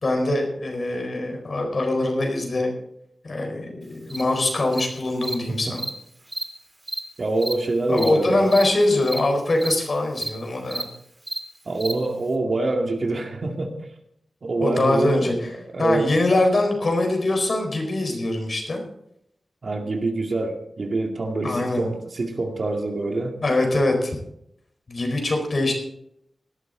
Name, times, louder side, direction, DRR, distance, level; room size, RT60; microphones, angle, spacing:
voice 1, 0.0-2.7 3.2-5.8 7.9-10.9 14.6-15.3 15.8-18.8 21.4-21.9 23.4-24.2 24.9-25.7, left 2 dB, 55° left, 3 dB, 4.3 m, -23 dB
Cricket, 4.1-4.2 4.7-4.8 5.2-5.3 5.8-5.9 6.3-6.4 6.9-7.0 7.4-7.5 8.0-8.1 8.5-8.6 9.1-9.2 9.6-9.7 10.2-10.3 10.7-10.8 11.3-11.4 11.8-11.9, right 1 dB, 20° right, 2.6 m, -30 dB
voice 2, 7.2-8.5 11.7-13.8 14.4-16.1 19.6-23.4, right 2 dB, 55° right, 3 dB, 2.3 m, -25 dB
18.0 x 11.5 x 4.0 m, 0.76 s
wide cardioid pair, 80°, 0 cm